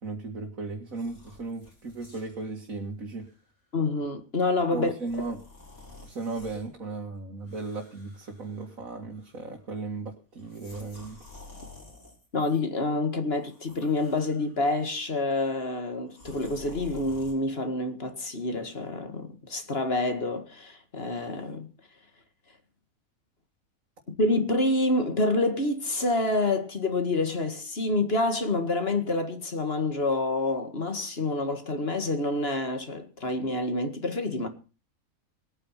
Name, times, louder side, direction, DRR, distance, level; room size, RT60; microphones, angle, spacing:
voice 1, 0.0-3.3 4.7-5.4 6.0-11.2, right 3 dB, 70° right, 2.4 m, -36 dB
sound 1, 0.9-2.5 3.1-3.3 5.0-6.7 7.4-8.9 9.2-9.6 10.4-12.6 13.4-14.7 16.1-17.3, left 2 dB, 80° left, 5.8 m, -50 dB
voice 2, 3.7-4.9 12.3-21.7 24.1-34.5, left 2 dB, 45° left, 2.1 m, -27 dB
20.0 x 9.2 x 5.8 m
omnidirectional pair, 1.5 m